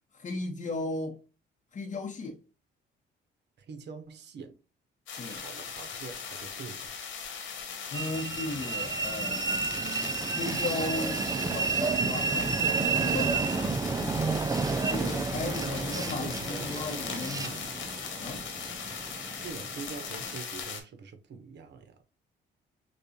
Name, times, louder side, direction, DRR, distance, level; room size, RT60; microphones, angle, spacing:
voice 1, 0.1-1.2 1.7-2.4 5.2-5.4 7.9-9.7 10.3-14.3 14.9-17.6 18.2-18.5, left 2 dB, 40° left, 0.8 m, -36 dB
voice 2, 3.6-4.6 5.3-7.1 14.9-17.8 19.4-22.0, right 5 dB, 60° right, 0.9 m, -44 dB
sound 1, 5.1-20.8, left 6 dB, 75° left, 1.5 m, -39 dB
Train, 7.9-20.4, right 4 dB, 20° right, 0.3 m, -31 dB
6.3 x 2.3 x 2.8 m
cardioid pair, 90°, 20 cm